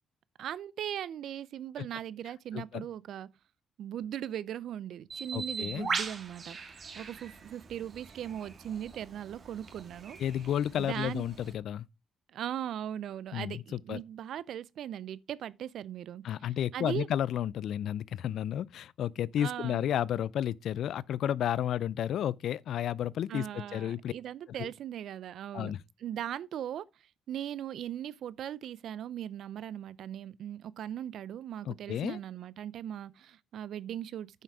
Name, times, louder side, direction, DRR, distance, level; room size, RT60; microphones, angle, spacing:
voice 1, 0.4-3.3 3.8-6.6 7.0-10.2 10.8-11.3 12.3-17.1 19.4-19.8 23.3-25.7 26.0-26.8 27.3-34.4, right 10 dB, 70° right, 0.6 m, -39 dB
voice 2, 2.5-2.8 5.3-5.9 10.2-11.9 13.3-13.6 13.9-14.0 16.2-24.1 24.6-24.7 25.5-25.8 31.7-32.2, left 10 dB, 70° left, 0.4 m, -32 dB
Bird, 5.1-11.5, right 5 dB, 45° right, 1.9 m, -40 dB
9.2 x 5.8 x 4.8 m
cardioid pair, 90°, 0 cm